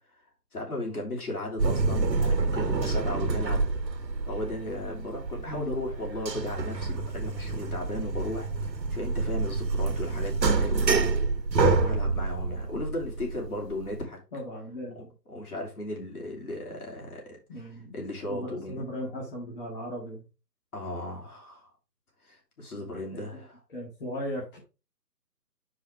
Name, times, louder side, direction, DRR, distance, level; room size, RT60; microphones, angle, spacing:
voice 1, 0.5-3.6 4.2-10.9 11.6-14.2 14.9-15.0 15.3-17.4 17.9-18.9 20.7-21.7 22.2-23.6, left 1 dB, 60° left, 0 dB, 3.3 m, -36 dB
sound 1, 1.6-14.0, right 3 dB, 85° right, 1.2 m, -28 dB
voice 2, 5.4-5.8 14.3-15.1 17.5-20.2 23.1-23.4 23.7-24.6, equal, 30° left, -4 dB, 2.1 m, -37 dB
5.9 x 4.9 x 4.7 m, 0.30 s
hypercardioid pair, 165°, 49 cm